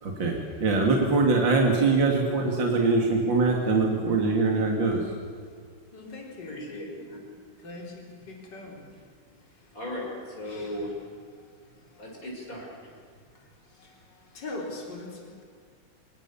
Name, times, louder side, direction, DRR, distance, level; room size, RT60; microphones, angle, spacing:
voice 1, 0.0-5.1, right 3 dB, 60° right, 1 dB, 3.1 m, -23 dB
voice 2, 5.9-6.7 7.6-8.9 10.5-10.8 13.7-15.4, left 2 dB, 55° left, 0 dB, 4.6 m, -41 dB
voice 3, 6.5-7.2 9.7-11.0 12.0-12.8 13.4-13.5, left 1 dB, 40° left, -1 dB, 6.9 m, -37 dB
26.0 x 22.5 x 7.1 m, 2.1 s
omnidirectional pair, 2.3 m